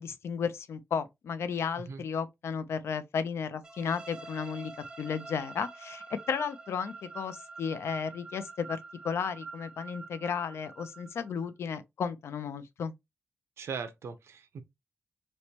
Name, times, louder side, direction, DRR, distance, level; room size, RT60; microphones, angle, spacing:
voice 1, 0.0-8.8 9.0-12.9, left 6 dB, 75° left, 0.5 m, -34 dB
sound 1, 3.6-11.4, right 4 dB, 20° right, 0.5 m, -46 dB
voice 2, 13.6-14.6, right 5 dB, 85° right, 0.7 m, -39 dB
3.2 x 3.0 x 2.9 m
wide cardioid pair, 155°, 4 cm